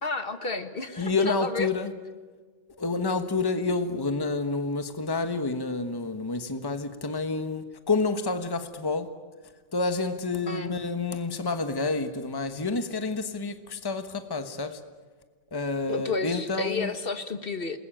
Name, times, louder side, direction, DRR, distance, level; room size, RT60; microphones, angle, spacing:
voice 1, 0.0-1.7 10.5-10.7 15.9-17.8, left 3 dB, 50° left, 9 dB, 1.6 m, -31 dB
voice 2, 1.0-1.9 2.8-9.1 9.7-14.8 15.5-16.9, left 3 dB, 20° left, 9 dB, 1.2 m, -29 dB
28.0 x 21.0 x 8.8 m, 1.4 s
omnidirectional pair, 1.2 m